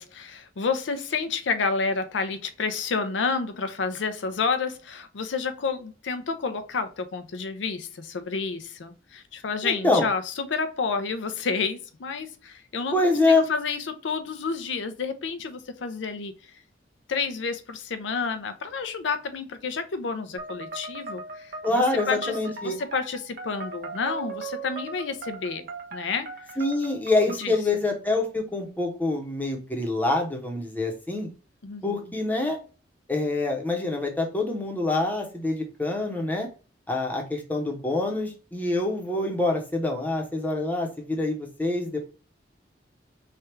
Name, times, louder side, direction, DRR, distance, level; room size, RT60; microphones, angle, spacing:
voice 1, 0.0-16.3 17.1-22.4 22.6-25.6 25.9-26.3 27.4-27.5 31.6-32.2, left 5 dB, 85° left, 0.5 m, -30 dB
voice 2, 9.6-10.1 12.9-13.5 21.6-22.8 26.6-31.3 31.8-32.6 33.1-36.5 36.9-42.0, left 2 dB, 10° left, 0.8 m, -25 dB
sound 1, 20.4-27.6, right 3 dB, 55° right, 0.8 m, -38 dB
3.3 x 2.3 x 4.4 m
head